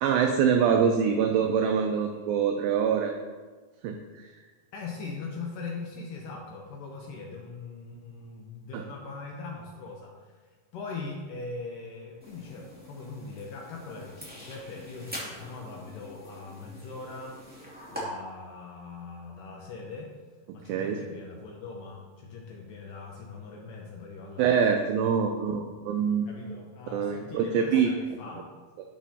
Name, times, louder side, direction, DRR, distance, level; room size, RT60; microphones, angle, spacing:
voice 1, 0.0-3.1 3.8-4.3 8.7-8.8 20.7-21.0 24.4-26.3 26.9-27.9, right 7 dB, 90° right, 4 dB, 2.0 m, -25 dB
voice 2, 4.7-10.4 10.7-17.4 17.9-20.1 20.5-24.6 24.9-25.1 26.3-28.5, left 4 dB, 75° left, -1 dB, 2.0 m, -41 dB
sound 1, 12.2-18.0, equal, 10° right, 0.6 m, -44 dB
10.5 x 6.1 x 2.8 m, 1.4 s
omnidirectional pair, 4.6 m